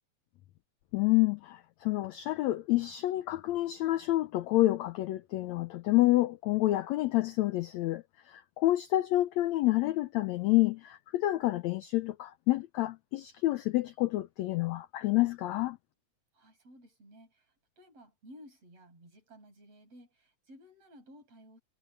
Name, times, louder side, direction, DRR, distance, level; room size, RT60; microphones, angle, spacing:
voice 1, 0.9-15.8, left 17 dB, 80° left, 1.6 m, -28 dB
voice 2, 16.3-21.6, equal, 45° right, 7.3 m, -55 dB
omnidirectional pair, 3.9 m